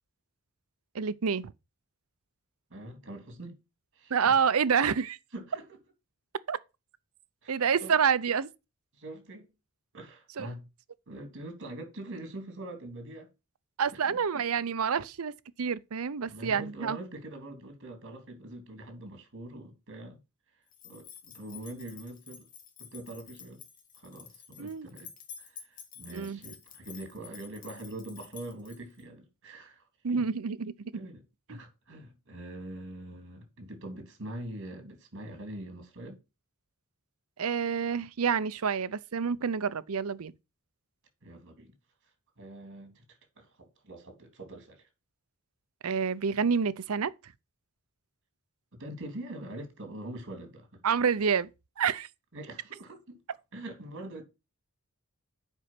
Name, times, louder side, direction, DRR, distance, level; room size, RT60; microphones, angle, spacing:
voice 1, 0.9-1.5 4.1-5.2 6.5-6.6 7.5-8.5 10.4-10.5 13.8-15.3 15.6-17.0 24.6-24.9 26.1-26.4 30.0-30.9 31.5-31.6 37.4-40.3 45.8-47.1 50.8-51.5 51.8-52.1, right 6 dB, 75° right, 0.6 m, -28 dB
voice 2, 2.7-3.6 3.9-4.3 5.3-5.8 7.4-7.9 8.9-9.5 9.9-10.6 11.1-13.3 13.9-14.4 16.3-20.2 20.8-22.5 22.8-23.6 24.0-25.1 25.4-29.8 30.1-30.3 30.9-31.2 31.5-36.2 41.2-41.7 42.4-44.9 48.7-50.8 52.3-53.2 53.5-54.2, right 1 dB, 60° right, 3.2 m, -43 dB
sound 1, 20.7-29.0, left 7 dB, 40° left, 1.9 m, -50 dB
8.0 x 5.5 x 5.8 m
head